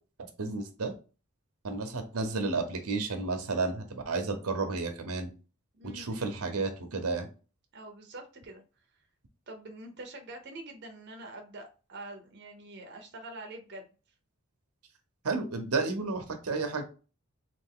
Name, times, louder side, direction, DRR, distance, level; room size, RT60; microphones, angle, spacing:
voice 1, 0.4-0.9 1.6-5.3 5.9-7.3 15.2-16.8, right 3 dB, 90° right, 0.8 m, -32 dB
voice 2, 5.7-6.3 7.7-8.6 9.5-13.9, right 2 dB, 50° right, 0.6 m, -45 dB
3.3 x 2.5 x 3.6 m
head